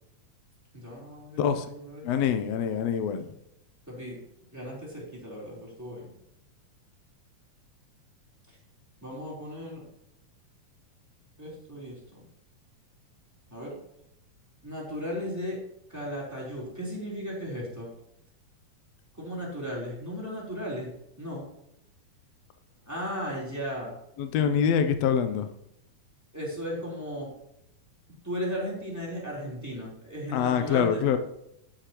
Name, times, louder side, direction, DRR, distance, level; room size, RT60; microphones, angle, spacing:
voice 1, 0.7-2.2 3.9-4.2 4.5-6.1 8.5-8.6 9.0-9.8 11.4-12.3 13.5-13.8 14.6-15.6 15.9-17.9 19.2-20.9 21.2-21.5 22.9-23.9 26.3-27.3 28.2-31.2, equal, 5° right, -5 dB, 3.4 m, -36 dB
voice 2, 2.0-3.2 24.2-25.5 30.3-31.2, left 7 dB, 75° left, 8 dB, 1.6 m, -25 dB
10.5 x 10.0 x 3.0 m, 0.80 s
omnidirectional pair, 3.7 m